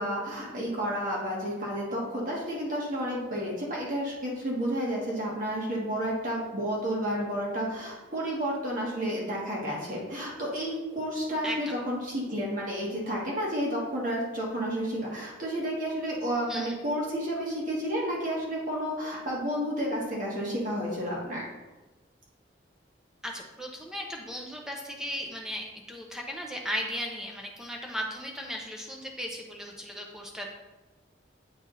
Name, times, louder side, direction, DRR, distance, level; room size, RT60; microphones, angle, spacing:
voice 1, 0.0-21.4, equal, 45° right, -4 dB, 1.7 m, -31 dB
voice 2, 11.4-11.8 16.5-16.8 23.2-30.5, equal, 5° right, 0 dB, 0.7 m, -36 dB
8.6 x 3.5 x 4.0 m, 1.1 s
head